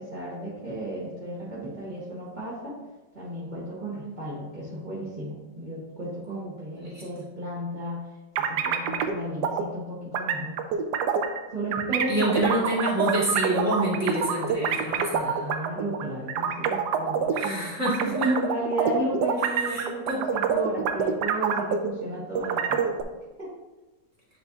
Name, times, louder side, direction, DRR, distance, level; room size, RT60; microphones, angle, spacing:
voice 1, 0.0-2.8 3.1-8.1 8.5-10.5 11.5-12.6 15.1-17.7 18.0-23.0 23.4-23.5, right 1 dB, 25° right, -10 dB, 1.6 m, -33 dB
sound 1, 8.4-9.1 9.4-9.6 10.1-11.4 11.7-17.5 17.9-22.1 22.4-23.0, right 7 dB, 75° right, 1.1 m, -26 dB
voice 2, 12.1-15.5 17.3-18.3 19.6-20.3, right 1 dB, 10° right, -7 dB, 2.0 m, -27 dB
10.0 x 3.9 x 2.7 m, 1.1 s
omnidirectional pair, 1.9 m